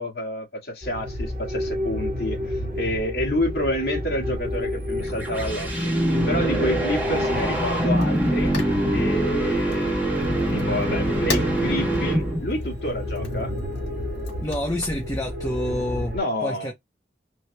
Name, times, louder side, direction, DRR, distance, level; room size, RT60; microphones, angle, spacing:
voice 1, 0.0-5.7 6.3-8.5 8.9-10.3 10.5-13.6 16.1-16.7, left 1 dB, 60° left, 1.7 m, -29 dB
sound 1, 0.8-16.2, left 1 dB, 55° right, 1.7 m, -30 dB
sound 2, 4.8-12.6, right 1 dB, 10° right, 1.3 m, -24 dB
Fire, 6.9-15.3, left 4 dB, 80° left, 1.9 m, -39 dB
voice 2, 14.4-16.2 16.4-16.7, left 1 dB, 20° left, 0.9 m, -28 dB
4.5 x 3.0 x 2.2 m
head